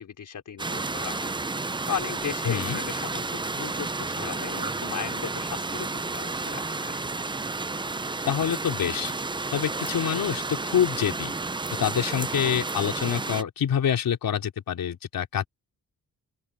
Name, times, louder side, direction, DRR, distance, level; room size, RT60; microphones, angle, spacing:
voice 1, 0.0-1.3 1.6-7.0, left 8 dB, 65° left, 3.8 m, -36 dB
sound 1, 0.6-13.4, right 3 dB, 15° right, 0.6 m, -31 dB
voice 2, 2.4-2.8 8.3-9.1 9.5-11.3 11.8-15.5, left 9 dB, 80° left, 3.6 m, -26 dB
open air
wide cardioid pair, 120°, 34 cm